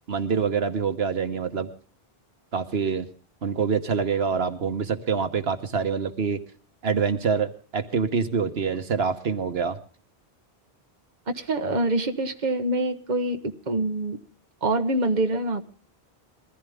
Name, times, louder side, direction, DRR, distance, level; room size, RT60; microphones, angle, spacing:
voice 1, 0.1-1.7 2.5-3.1 3.4-6.4 6.8-9.8, right 6 dB, 80° right, 9 dB, 1.4 m, -25 dB
voice 2, 11.3-14.2 14.6-15.7, right 2 dB, 45° right, 7 dB, 1.3 m, -25 dB
21.5 x 15.0 x 3.5 m, 0.41 s
omnidirectional pair, 1.0 m